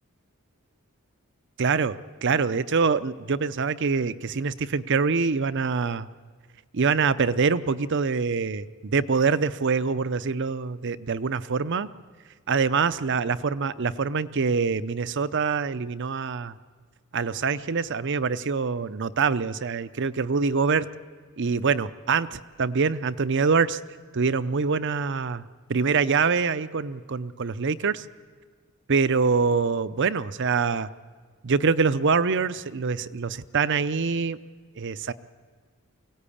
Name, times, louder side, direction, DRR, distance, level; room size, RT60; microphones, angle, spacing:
voice 1, 1.6-6.1 6.7-11.9 12.5-16.6 17.1-20.9 21.4-23.8 24.1-25.4 25.7-28.0 28.9-30.9 31.4-34.4 34.8-35.1, right 5 dB, 55° right, 14 dB, 0.6 m, -25 dB
23.0 x 17.5 x 8.6 m, 1.5 s
head